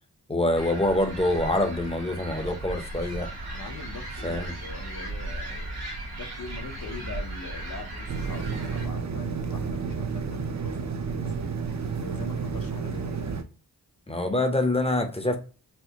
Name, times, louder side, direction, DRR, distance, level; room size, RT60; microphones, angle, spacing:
voice 1, 0.3-3.3 4.2-4.5 14.1-15.4, left 1 dB, 15° left, 0.6 m, -25 dB
sound 1, 0.5-8.9, right 2 dB, 70° right, 1.3 m, -36 dB
voice 2, 3.5-5.8 6.1-11.5 12.0-13.4, left 4 dB, 55° left, 0.8 m, -42 dB
sound 2, 8.1-13.4, right 5 dB, 45° right, 0.5 m, -31 dB
4.3 x 2.1 x 2.8 m
cardioid pair, 50°, 39 cm